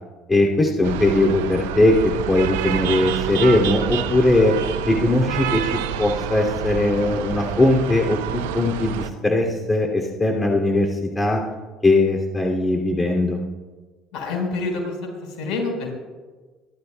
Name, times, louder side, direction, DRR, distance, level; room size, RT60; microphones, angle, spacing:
voice 1, 0.3-4.5 4.9-10.9 11.1-11.4 11.8-13.4, left 2 dB, 20° left, 0 dB, 2.6 m, -19 dB
sound 1, 0.8-9.1, right 9 dB, 80° right, 0.8 m, -28 dB
voice 2, 14.1-16.0, left 3 dB, 65° left, 2 dB, 4.6 m, -27 dB
27.5 x 12.5 x 2.3 m, 1.3 s
hypercardioid pair, 60°, 0 cm